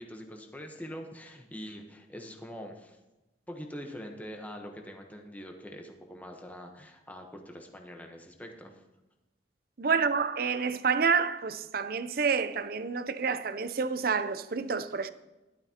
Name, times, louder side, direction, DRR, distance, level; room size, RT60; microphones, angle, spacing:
voice 1, 0.0-3.0 3.5-8.8, equal, 10° left, 1.0 m, -44 dB
voice 2, 9.8-15.1, right 5 dB, 55° right, 0.6 m, -28 dB
12.5 x 11.5 x 2.9 m
head